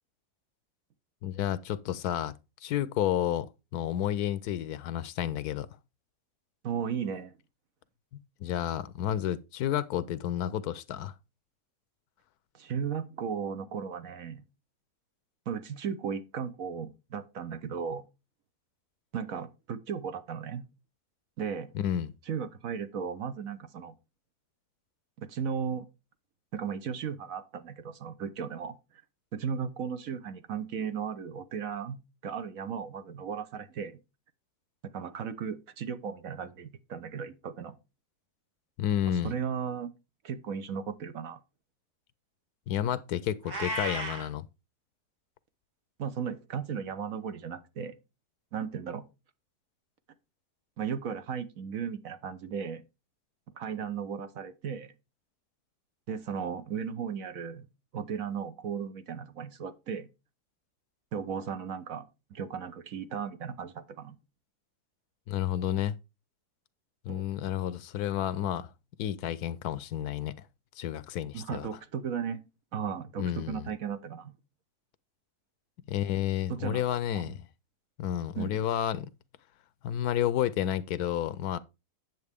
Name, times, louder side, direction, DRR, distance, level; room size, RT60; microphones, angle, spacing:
voice 1, 1.2-2.3 2.6-5.7 8.1-11.1 21.7-22.1 38.8-39.3 42.7-44.5 65.3-66.0 67.0-68.7 69.0-70.3 70.8-71.7 73.2-73.7 75.9-77.5 78.0-79.1 79.8-81.6, left 11 dB, 75° left, 1.1 m, -31 dB
voice 2, 6.6-7.3 12.5-14.4 15.5-18.0 19.1-20.6 21.4-21.7 22.3-23.9 25.2-25.9 26.5-28.8 29.3-34.0 34.8-37.8 39.2-39.9 40.2-41.4 46.0-47.9 48.5-49.0 50.8-52.8 53.6-54.9 56.1-57.6 57.9-60.1 61.1-62.0 62.3-64.1 67.1-67.2 71.3-72.4 72.7-74.3 76.5-76.8 77.1-77.3 78.4-78.6, right 7 dB, 60° right, 1.2 m, -36 dB
Meow, 43.4-44.3, right 1 dB, 75° right, 3.8 m, -34 dB
9.4 x 7.3 x 3.5 m
omnidirectional pair, 1.7 m